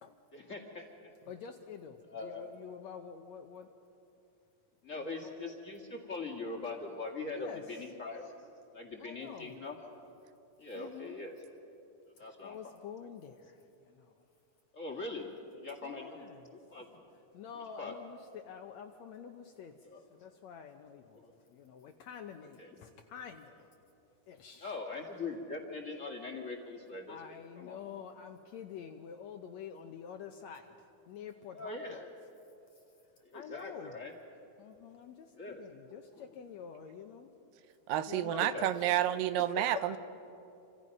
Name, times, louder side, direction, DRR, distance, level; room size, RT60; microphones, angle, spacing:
voice 1, 0.3-1.1 2.1-2.4 4.8-8.3 8.7-9.9 10.6-11.3 12.2-12.6 14.7-15.3 15.6-16.2 16.5-17.0 17.5-17.9 19.8-20.1 21.1-21.4 22.4-22.8 24.5-27.8 31.5-32.1 33.2-34.1 35.3-35.7 36.1-36.3 38.3-38.7, left 3 dB, 30° left, 0 dB, 1.8 m, -42 dB
voice 2, 1.3-3.7 5.0-5.3 7.3-7.6 9.0-9.5 10.8-11.2 12.4-13.6 13.9-14.1 15.8-16.4 17.3-19.7 20.1-23.7 24.3-24.7 27.1-30.8 31.1-32.0 33.3-33.9 34.6-37.3 38.1-38.9 39.6-40.0, left 7 dB, 70° left, 5 dB, 1.7 m, -47 dB
voice 3, 37.9-40.0, right 12 dB, 90° right, 12 dB, 2.5 m, -30 dB
28.0 x 26.5 x 5.4 m, 2.9 s
omnidirectional pair, 3.9 m